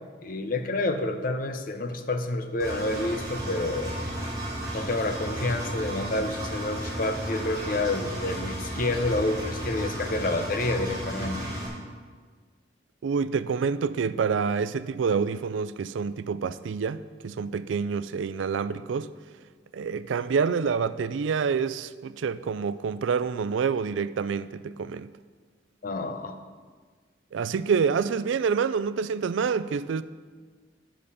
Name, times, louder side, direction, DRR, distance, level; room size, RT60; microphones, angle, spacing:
voice 1, 0.2-4.0 4.7-11.4 25.8-26.3, left 2 dB, 50° left, 0.7 m, -29 dB
Engine, 2.6-11.7, right 1 dB, 20° right, 2.9 m, -33 dB
voice 2, 13.0-19.1 19.7-25.1 27.3-30.0, right 5 dB, 90° right, 0.4 m, -27 dB
9.8 x 5.1 x 6.7 m
head